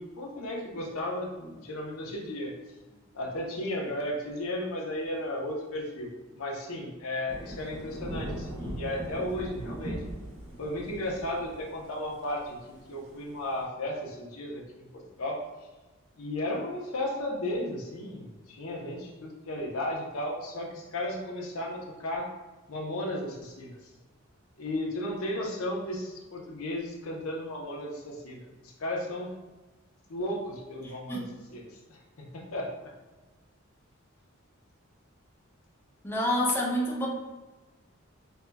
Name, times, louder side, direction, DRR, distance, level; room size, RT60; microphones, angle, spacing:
voice 1, 0.0-2.5 2.9-10.0 10.6-12.6 12.9-15.4 16.2-22.3 22.7-23.9 24.6-29.3 30.1-31.2 31.5-32.9, left 1 dB, 90° left, -1 dB, 0.8 m, -34 dB
Thunder / Rain, 7.3-13.6, right 1 dB, 80° right, 1.0 m, -39 dB
voice 2, 30.8-31.3 36.0-37.1, left 1 dB, 10° left, -4 dB, 0.6 m, -28 dB
5.4 x 2.2 x 2.2 m, 1.2 s
head